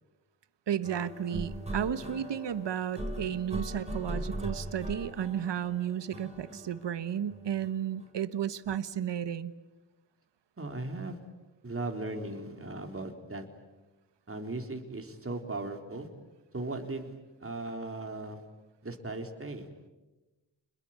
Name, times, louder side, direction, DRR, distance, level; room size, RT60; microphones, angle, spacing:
voice 1, 0.7-9.5, right 9 dB, 70° right, 14 dB, 1.3 m, -33 dB
sound 1, 0.8-8.1, right 1 dB, 15° right, 5.9 m, -39 dB
voice 2, 10.6-11.2 11.6-13.5 14.3-16.1 16.5-18.4 18.8-19.7, right 2 dB, 30° right, 4 dB, 4.0 m, -37 dB
28.0 x 22.0 x 9.0 m, 1.1 s
cardioid pair, 60°, 44 cm